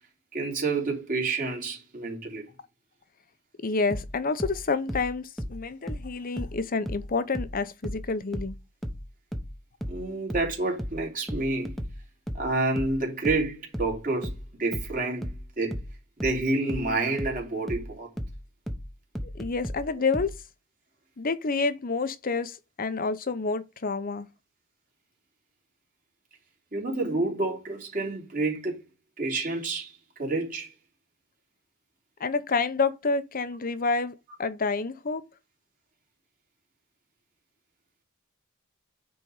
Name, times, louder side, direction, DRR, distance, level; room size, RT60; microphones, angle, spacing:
voice 1, 0.3-2.4 9.9-11.7 12.3-15.8 16.2-18.1 26.7-28.8 29.2-30.7, right 2 dB, 45° right, 3.2 m, -29 dB
voice 2, 3.6-8.5 19.3-20.3 21.2-24.3 32.2-35.2, left 4 dB, 45° left, 0.8 m, -28 dB
sound 1, 3.9-7.1 7.3-20.4, equal, ahead, 1.0 m, -35 dB
9.4 x 4.1 x 4.9 m
head